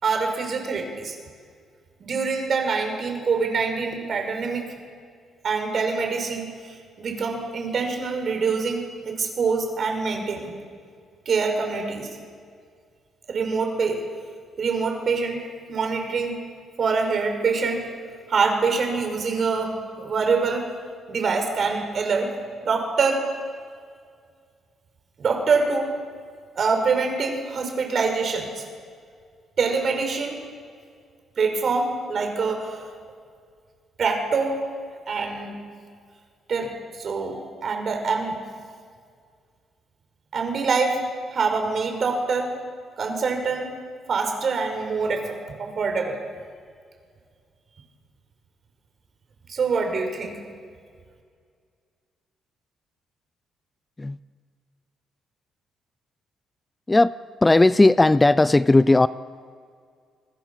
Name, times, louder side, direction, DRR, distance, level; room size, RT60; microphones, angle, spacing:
voice 1, 0.0-1.2 2.0-4.7 5.4-10.5 11.3-12.1 13.3-14.0 14.6-15.4 15.7-16.4 16.8-17.8 18.3-20.7 21.1-22.3 22.6-23.2 25.2-25.9 26.6-28.7 29.6-30.4 31.4-32.8 34.0-34.6 35.1-35.6 36.5-38.4 40.3-41.0 41.3-42.5 43.0-43.7 44.1-46.2 49.5-50.4, right 4 dB, 50° right, 4 dB, 6.2 m, -25 dB
voice 2, 57.4-59.1, left 2 dB, 15° left, 16 dB, 0.5 m, -16 dB
28.5 x 21.0 x 7.5 m, 2.1 s
cardioid pair, 90°, 0 cm